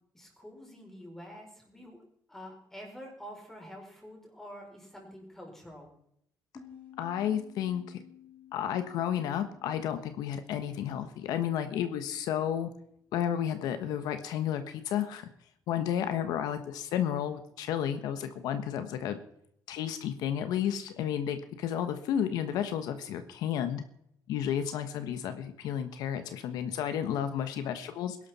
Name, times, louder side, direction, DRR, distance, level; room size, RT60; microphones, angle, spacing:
voice 1, 0.1-2.0 2.3-5.9, equal, 5° left, 0 dB, 4.8 m, -47 dB
sound 1, 6.5-11.9, left 9 dB, 20° left, 3.3 m, -55 dB
voice 2, 7.0-8.0 8.5-12.7 13.1-15.3 15.7-19.2 19.7-23.8 24.3-28.2, left 9 dB, 80° left, 9 dB, 1.4 m, -32 dB
21.5 x 12.0 x 4.4 m, 0.72 s
cardioid pair, 170°, 7 cm